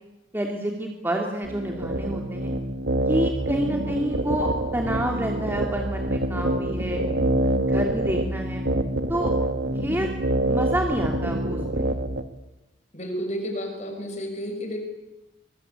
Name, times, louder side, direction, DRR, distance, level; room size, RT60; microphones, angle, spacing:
voice 1, 0.3-2.6 3.1-7.0 7.7-8.7 9.1-9.3 9.8-10.1 10.4-11.9, right 1 dB, 10° right, 1 dB, 2.4 m, -28 dB
sound 1, 1.4-12.2, right 1 dB, 90° right, 1.8 m, -26 dB
voice 2, 12.9-14.8, equal, 40° left, 4 dB, 6.7 m, -31 dB
24.0 x 23.0 x 8.8 m, 1.0 s
head